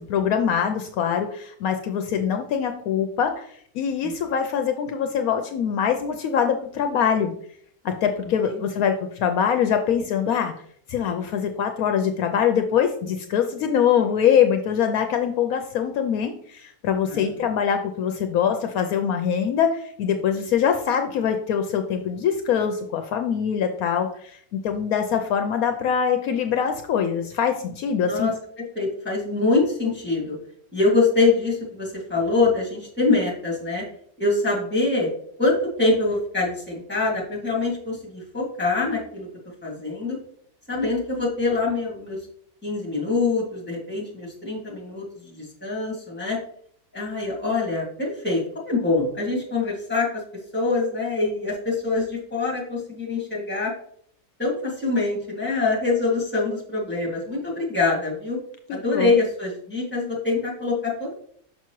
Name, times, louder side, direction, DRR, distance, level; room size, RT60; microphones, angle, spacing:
voice 1, 0.0-3.5 3.7-7.3 7.8-8.9 9.2-10.5 10.9-28.3 58.7-59.1, left 8 dB, 75° left, 6 dB, 1.0 m, -23 dB
voice 2, 28.0-28.3 28.8-30.4 30.7-33.8 34.2-35.1 35.4-39.3 39.6-40.2 40.7-42.2 42.6-46.4 46.9-50.1 50.5-53.7 54.4-58.4 58.7-61.1, left 3 dB, 5° left, -3 dB, 1.9 m, -24 dB
6.0 x 5.7 x 3.0 m, 0.63 s
omnidirectional pair, 1.6 m